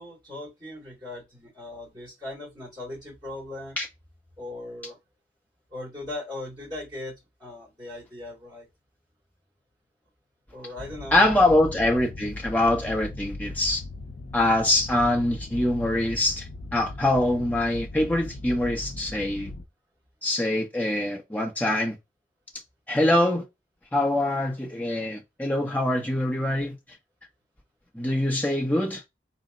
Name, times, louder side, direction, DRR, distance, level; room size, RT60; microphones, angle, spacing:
voice 1, 0.0-3.8 4.4-5.0 5.7-8.7 10.5-11.6, left 2 dB, 25° right, 2.2 m, -39 dB
sound 1, 10.8-19.6, left 2 dB, 50° left, 0.5 m, -38 dB
voice 2, 11.1-13.8 14.3-19.5 20.2-22.0 22.9-23.5 23.9-26.8 27.9-29.0, left 1 dB, 10° left, 0.7 m, -24 dB
4.2 x 2.1 x 3.7 m
head